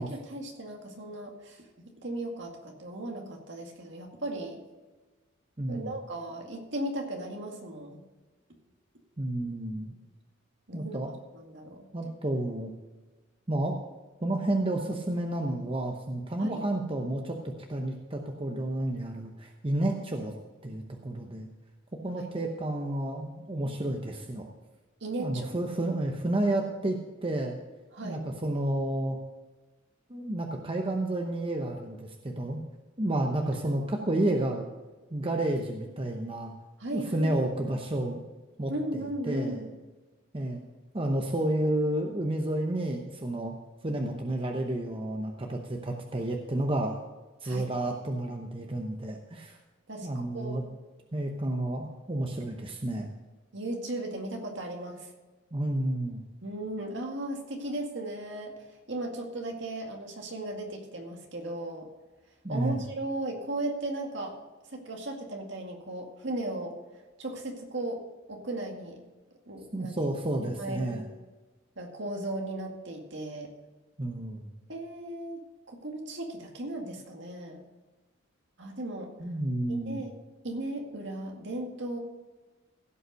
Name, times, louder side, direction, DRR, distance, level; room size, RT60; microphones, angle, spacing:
voice 1, 0.0-4.6 5.7-8.0 10.7-11.0 11.3-11.8 16.4-16.6 22.2-22.3 25.0-25.6 27.9-28.2 33.6-34.0 36.8-37.3 38.7-39.7 47.4-47.7 49.9-50.7 53.5-55.1 56.4-61.9 62.5-64.3 64.7-66.8 67.2-68.0 68.3-69.0 69.5-70.0 70.4-71.1 71.8-73.5 74.7-75.4 75.7-77.6 78.6-79.1 79.7-80.1 80.4-82.0, right 1 dB, 65° right, 2 dB, 2.1 m, -36 dB
voice 2, 5.6-5.9 9.2-9.9 10.7-11.1 11.9-12.7 13.5-13.8 14.2-20.3 20.6-21.5 22.0-24.5 25.2-27.5 28.0-29.2 30.1-32.6 33.0-34.7 35.1-36.5 36.9-38.2 38.6-38.7 39.3-39.6 40.3-40.6 40.9-43.6 43.8-47.0 47.4-49.6 50.0-50.6 51.1-53.1 55.5-56.2 62.4-62.8 69.7-71.0 74.0-74.5 79.2-80.0, right 1 dB, 25° right, 2 dB, 0.9 m, -31 dB
16.0 x 5.5 x 6.3 m, 1.2 s
head